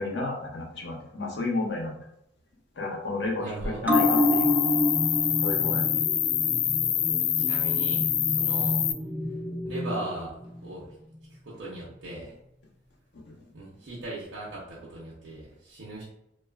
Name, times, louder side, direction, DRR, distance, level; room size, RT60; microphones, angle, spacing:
voice 1, 0.0-1.9 2.7-4.5 5.4-5.9 13.2-13.5, left 2 dB, 65° left, -1 dB, 0.7 m, -32 dB
voice 2, 3.4-3.9 7.4-8.8 9.6-10.9 11.3-12.3 13.5-16.0, right 2 dB, 80° right, -7 dB, 0.7 m, -38 dB
sound 1, 3.8-10.8 11.1-11.2, left 1 dB, 10° right, 0.3 m, -29 dB
Cricket, 3.9-8.9, left 10 dB, 85° left, 0.3 m, -26 dB
3.1 x 2.3 x 2.3 m, 0.81 s
head